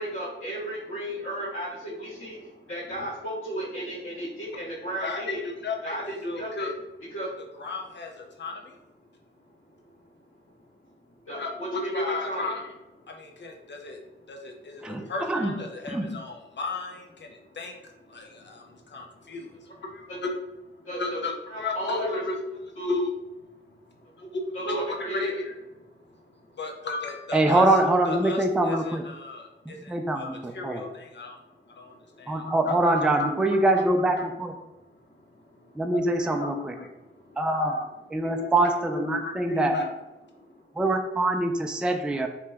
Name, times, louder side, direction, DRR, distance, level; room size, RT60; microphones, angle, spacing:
voice 1, 0.0-5.4 5.8-6.7 7.1-7.5 9.8-9.9 11.2-12.5 18.4-18.5 20.1-20.2 20.8-21.2 21.5-22.2 22.8-23.0 24.2-24.3 24.5-25.3 35.3-35.8 37.1-37.4, right 1 dB, 75° left, -11 dB, 1.1 m, -34 dB
voice 2, 5.0-6.0 6.2-6.7 7.6-8.7 11.4-12.6 13.1-14.0 14.3-17.8 18.1-20.3 21.0-22.4 22.9-23.1 24.3-25.5 26.6-31.4 31.7-34.3 35.9-36.9 37.5-37.9 38.2-39.9, left 3 dB, 60° left, 2 dB, 0.6 m, -33 dB
voice 3, 14.8-15.5 15.9-16.1 27.3-29.0 29.7-30.8 32.3-34.5 35.8-36.7 37.4-37.7 38.1-39.7 40.8-42.3, right 2 dB, 5° right, 4 dB, 0.3 m, -24 dB
2.9 x 2.2 x 3.4 m, 1.0 s
cardioid pair, 55°, 21 cm